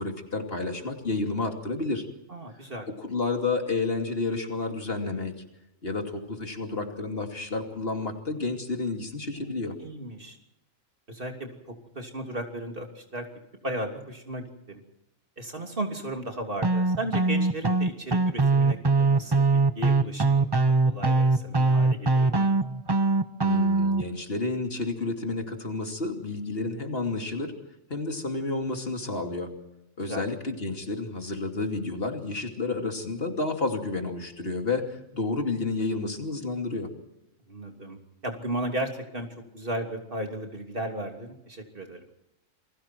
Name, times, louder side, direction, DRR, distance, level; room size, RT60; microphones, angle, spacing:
voice 1, 0.0-2.1 2.9-5.4 5.8-9.8 23.4-27.5 27.9-29.5 30.0-36.9, left 3 dB, 45° left, 3 dB, 2.9 m, -30 dB
voice 2, 2.3-2.9 9.3-9.5 9.8-10.4 11.1-11.5 11.9-13.2 13.6-14.8 15.4-20.5 20.8-22.5 30.0-30.2 37.5-38.0 38.2-39.3 39.5-42.0, right 1 dB, 40° right, 3 dB, 3.3 m, -35 dB
sound 1, 16.6-24.0, right 3 dB, 25° right, 0.7 m, -22 dB
28.5 x 22.0 x 4.6 m, 0.86 s
omnidirectional pair, 1.4 m